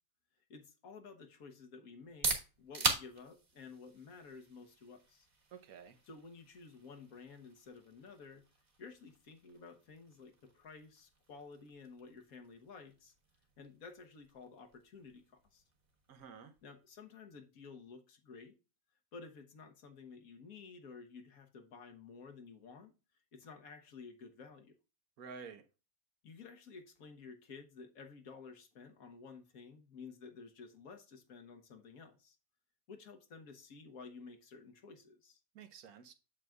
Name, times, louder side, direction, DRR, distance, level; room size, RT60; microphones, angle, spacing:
voice 1, 0.5-5.3 6.0-8.4 8.8-13.1 13.6-15.2 15.5-15.6 16.6-18.5 19.1-22.9 23.3-24.8 26.2-32.4 32.9-35.4, left 4 dB, 70° left, 1.6 m, -53 dB
sound 1, 1.9-17.6, right 3 dB, 40° right, 1.6 m, -44 dB
voice 2, 5.5-6.0 16.1-16.5 25.2-25.6 35.5-36.1, right 6 dB, 80° right, 1.4 m, -50 dB
8.2 x 7.7 x 2.3 m
omnidirectional pair, 1.5 m